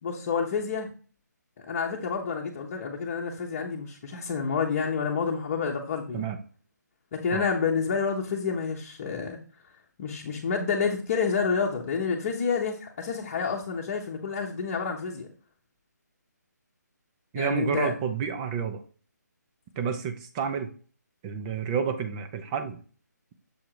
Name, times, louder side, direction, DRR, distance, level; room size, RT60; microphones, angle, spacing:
voice 1, 0.0-0.9 1.7-6.2 7.1-9.4 10.0-15.3 17.3-17.9, left 5 dB, 30° left, -2 dB, 1.1 m, -29 dB
voice 2, 17.3-18.8 19.8-20.7 21.2-22.8, right 7 dB, 20° right, 7 dB, 0.7 m, -30 dB
7.1 x 3.7 x 4.7 m, 0.39 s
figure-of-eight pair, 160°, 10 cm